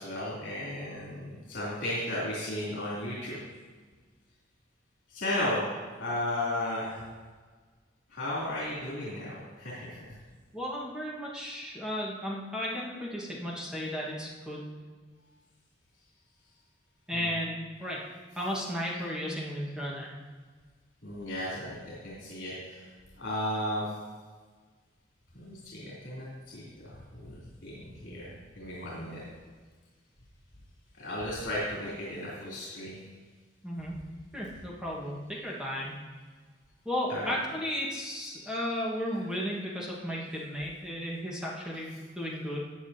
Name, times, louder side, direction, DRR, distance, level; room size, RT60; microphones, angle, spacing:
voice 1, 0.0-3.4 5.1-7.0 8.1-10.1 17.1-17.3 18.9-19.0 21.0-22.9 23.2-23.9 25.3-28.3 28.5-29.2 31.0-33.0 37.1-37.3 38.4-38.7, left 1 dB, 65° left, -8 dB, 3.3 m, -35 dB
voice 2, 10.5-14.7 17.1-18.0 18.3-20.1 33.6-33.9 34.3-36.0 36.8-42.6, equal, 5° right, -4 dB, 1.6 m, -34 dB
14.5 x 8.5 x 2.9 m, 1.5 s
head